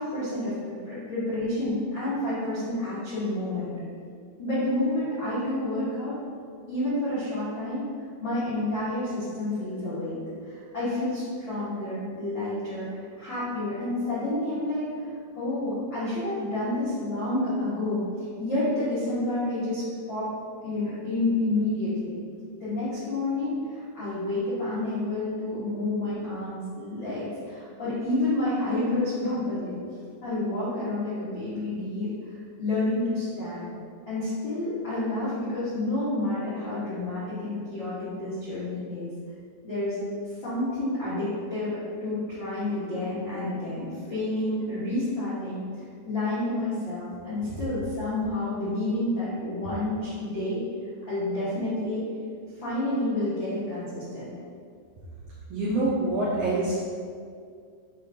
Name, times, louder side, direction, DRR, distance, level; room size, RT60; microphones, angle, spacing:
voice 1, 0.0-3.7 4.4-6.2 6.7-7.9 8.2-10.1 10.4-15.0 15.3-20.3 20.6-22.2 22.6-29.8 30.2-32.1 32.6-33.7 34.1-39.1 39.6-40.0 40.2-50.6 51.0-52.0 52.6-54.3, left 2 dB, 80° left, -12 dB, 1.0 m, -29 dB
voice 2, 55.5-56.7, right 2 dB, 85° right, -6 dB, 1.7 m, -25 dB
6.9 x 5.2 x 2.8 m, 2.2 s
omnidirectional pair, 4.6 m